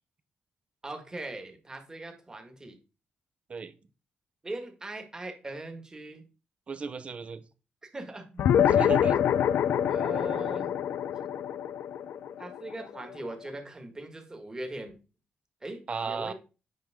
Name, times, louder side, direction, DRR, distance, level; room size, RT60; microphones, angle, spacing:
voice 1, 0.8-2.8 4.4-6.2 7.8-8.4 9.8-10.8 12.4-15.0 15.6-16.3, right 2 dB, 20° right, 4 dB, 1.8 m, -40 dB
voice 2, 6.7-7.4 8.7-9.2 15.9-16.3, right 5 dB, 35° right, 12 dB, 0.9 m, -34 dB
sound 1, 8.4-13.2, left 9 dB, 75° left, 0.5 m, -25 dB
9.3 x 5.9 x 3.7 m, 0.32 s
cardioid pair, 120°, 3 cm